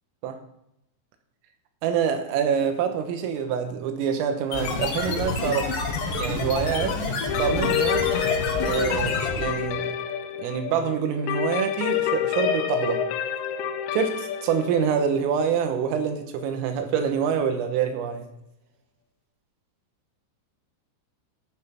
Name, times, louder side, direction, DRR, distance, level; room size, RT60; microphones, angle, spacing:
voice 1, 1.8-5.7 6.2-7.0 7.4-8.1 8.6-9.9 10.4-13.0 13.9-18.3, right 7 dB, 85° right, 6 dB, 3.6 m, -26 dB
sound 1, 4.5-9.7, left 3 dB, 65° left, 2.1 m, -28 dB
sound 2, 7.3-17.0, left 9 dB, 90° left, 3.6 m, -28 dB
11.5 x 6.9 x 5.8 m, 0.83 s
omnidirectional pair, 6.0 m